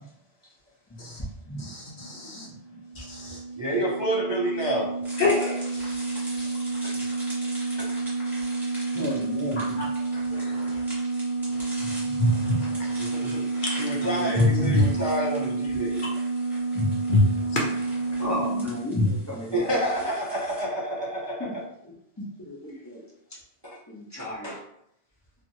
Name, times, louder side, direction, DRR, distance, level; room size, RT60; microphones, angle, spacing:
voice 1, 1.6-2.5 3.0-3.4 5.2-6.5 9.6-9.8 10.3-10.8 11.5-11.6 12.2-13.1 13.6-14.1 14.7-14.9 17.1-18.3, left 2 dB, 55° left, -2 dB, 0.7 m, -27 dB
voice 2, 2.1-2.6 8.9-9.6 12.0-12.1 14.0-14.7 16.7-16.9 18.2-20.1 21.4-21.5 21.8-21.9 22.2-23.0 23.9-24.5, left 2 dB, 20° left, -5 dB, 0.6 m, -29 dB
sound 1, 2.5-18.7, right 3 dB, 40° left, 1.3 m, -30 dB
voice 3, 3.6-4.9 6.5-6.9 7.8-7.9 13.0-13.4 13.8-16.0 19.5-21.7 22.7-22.8 23.6-23.8 24.2-24.6, right 1 dB, 30° right, -7 dB, 0.5 m, -29 dB
sound 2, 5.0-20.6, equal, ahead, 1.1 m, -44 dB
2.8 x 2.4 x 2.7 m, 0.72 s
omnidirectional pair, 1.1 m